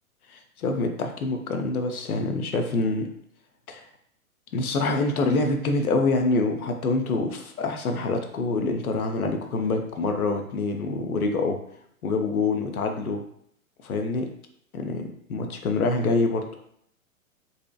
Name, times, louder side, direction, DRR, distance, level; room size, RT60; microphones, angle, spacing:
voice 1, 0.3-3.1 3.7-3.8 4.5-11.6 12.0-13.2 13.8-14.3 14.7-16.5, left 3 dB, 90° left, 5 dB, 0.5 m, -26 dB
2.7 x 2.0 x 2.3 m, 0.70 s
figure-of-eight pair, 115°, 43 cm